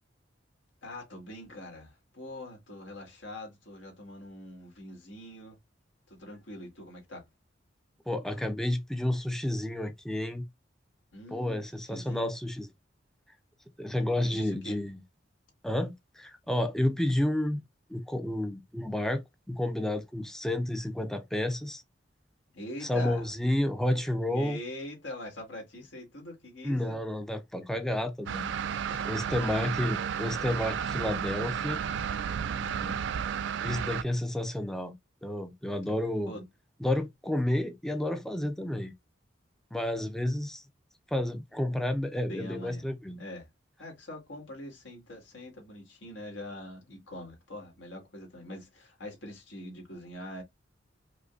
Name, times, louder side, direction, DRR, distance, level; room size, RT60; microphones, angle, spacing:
voice 1, 0.8-5.6 6.1-7.2 11.1-12.3 14.2-14.8 22.5-23.3 24.3-27.0 28.9-29.3 32.5-33.0 36.3-36.5 42.3-42.8 43.2-43.5 43.8-50.4, left 1 dB, 85° left, 1.7 m, -43 dB
voice 2, 8.1-10.4 11.3-12.7 13.8-15.0 15.6-17.6 17.9-19.2 19.5-21.8 22.8-24.6 26.6-28.5 29.0-31.8 33.6-35.0 35.2-36.4 36.8-38.9 39.7-40.6 41.1-43.2, left 1 dB, 5° left, 0.4 m, -30 dB
sound 1, 28.3-34.0, right 8 dB, 70° right, 0.3 m, -32 dB
4.9 x 2.1 x 2.3 m
head